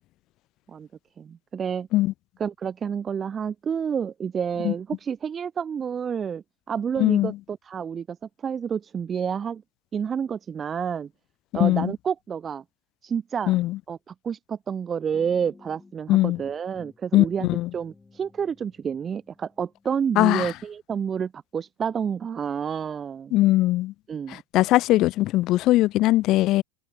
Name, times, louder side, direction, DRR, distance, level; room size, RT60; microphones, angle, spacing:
voice 1, 1.2-1.9 2.4-8.2 8.4-9.6 9.9-11.1 11.5-12.6 13.0-13.5 13.9-23.3 24.1-24.4, right 7 dB, 20° right, 0.4 m, -29 dB
voice 2, 7.0-7.3 11.5-11.9 13.5-13.8 16.1-16.4 17.1-17.7 20.2-20.5 23.3-23.9 24.3-26.6, left 16 dB, 40° left, 0.7 m, -20 dB
sound 1, 15.1-16.0 16.4-19.9 20.4-20.6, left 3 dB, 10° left, 3.0 m, -52 dB
supercardioid pair, 155°, 0 cm